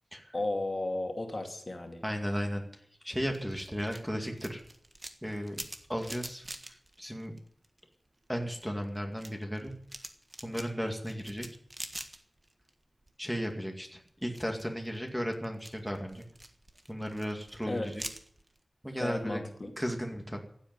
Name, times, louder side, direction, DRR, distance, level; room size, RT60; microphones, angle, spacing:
voice 1, 0.3-2.0 17.7-17.9 19.0-19.7, left 2 dB, 35° left, 3 dB, 2.5 m, -34 dB
voice 2, 2.0-4.6 5.2-5.6 5.9-7.4 8.3-9.7 10.4-11.5 13.2-16.2 16.9-18.0 18.8-19.4 19.8-20.4, equal, 5° right, 3 dB, 2.2 m, -35 dB
sound 1, 3.3-7.9 8.3-12.7 13.0-13.6 14.1-18.6, right 1 dB, 25° right, 1.5 m, -46 dB
15.5 x 8.1 x 9.5 m, 0.66 s
wide cardioid pair, 80°, 0 cm